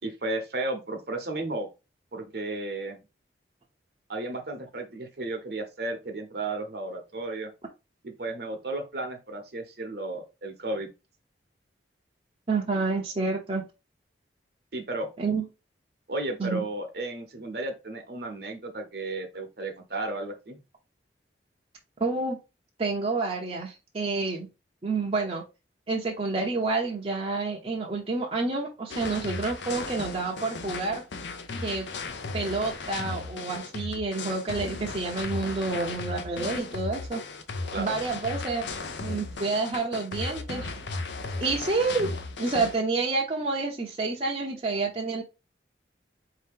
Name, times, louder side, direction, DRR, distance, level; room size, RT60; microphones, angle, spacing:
voice 1, 0.0-1.7 2.1-3.0 4.1-7.5 8.0-10.9 14.7-15.1 16.1-20.6 37.7-38.0, right 2 dB, 55° right, 5 dB, 0.9 m, -33 dB
voice 2, 12.5-13.6 15.2-15.4 16.4-16.6 22.0-22.4 22.8-24.5 24.8-25.4 25.9-31.0 31.6-31.9 32.3-37.2 37.8-38.7 39.0-40.7 41.4-42.1 42.4-45.2, right 3 dB, 30° right, -1 dB, 0.7 m, -29 dB
sound 1, 28.9-42.8, left 3 dB, 75° left, 0.6 m, -36 dB
4.3 x 2.8 x 3.6 m, 0.27 s
head